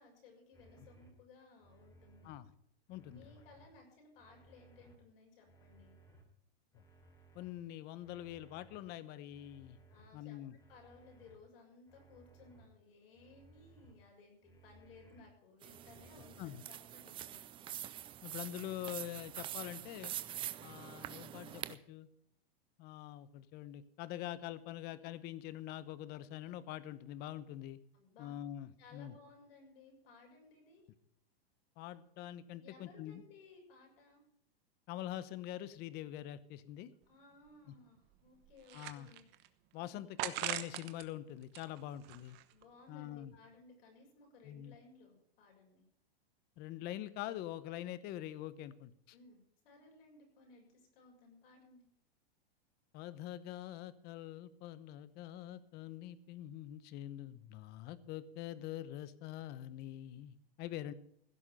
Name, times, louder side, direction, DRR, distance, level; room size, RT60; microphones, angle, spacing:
voice 1, 0.0-2.3 3.1-5.9 9.9-17.4 27.9-28.3 28.8-30.9 32.6-34.2 37.1-39.3 42.5-45.9 49.1-51.8, left 3 dB, 70° left, 1 dB, 6.8 m, -60 dB
sound 1, 0.5-1.1 1.6-2.4 2.9-3.7 4.2-4.9 5.4-6.2 6.7-7.5 8.0-8.8 9.3-10.1 10.6-11.4 11.9-12.6 13.1-13.9 14.4-15.2 15.7-16.5, right 2 dB, 10° left, 3.3 m, -62 dB
voice 2, 2.9-3.3 6.7-6.8 7.3-9.8 10.1-10.5 16.4-16.6 18.2-20.1 20.6-22.1 22.8-27.8 28.2-29.1 31.8-33.2 34.9-36.9 37.7-37.8 38.7-39.1 39.7-42.4 42.9-43.3 44.4-44.7 46.6-49.1 52.9-60.9, left 13 dB, 35° left, 16 dB, 0.9 m, -45 dB
sound 2, 15.6-21.7, right 12 dB, 15° right, 0.4 m, -45 dB
sound 3, 37.0-37.1 37.5-37.6 38.1-39.5 40.2-41.1 41.4-42.6, right 15 dB, 35° right, 1.0 m, -42 dB
16.0 x 6.4 x 8.9 m, 0.70 s
supercardioid pair, 145°, 30 cm